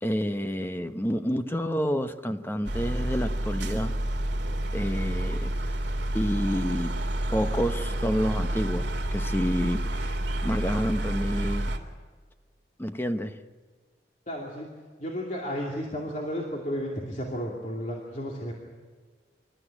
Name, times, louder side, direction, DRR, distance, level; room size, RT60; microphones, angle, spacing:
voice 1, 0.0-3.9 4.7-5.7 6.1-7.0 7.3-10.2 10.4-11.7 12.8-13.4, equal, 10° left, 9 dB, 0.9 m, -29 dB
sound 1, 2.6-11.8, right 1 dB, 75° right, 2.4 m, -29 dB
voice 2, 14.3-14.7 15.0-18.5, equal, 40° left, -1 dB, 2.6 m, -33 dB
26.0 x 13.5 x 10.0 m, 1.5 s
head